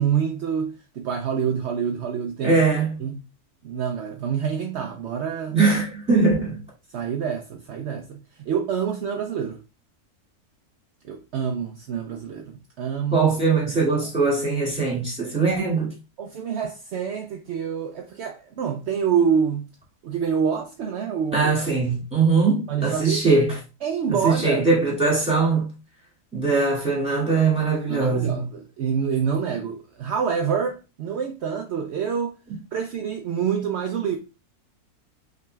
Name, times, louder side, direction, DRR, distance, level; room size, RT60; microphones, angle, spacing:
voice 1, 0.0-2.6 3.0-3.1 3.6-5.6 6.9-9.6 11.1-13.3 13.7-13.8 16.2-19.7 20.0-21.5 22.7-23.2 23.8-24.7 27.9-32.3 32.7-34.2, right 7 dB, 65° right, 0.7 m, -26 dB
voice 2, 2.4-3.0 5.5-6.6 13.1-15.9 21.3-23.6 24.1-25.7 26.3-28.5, right 4 dB, 5° right, 2.2 m, -21 dB
5.7 x 3.9 x 2.3 m
omnidirectional pair, 1.7 m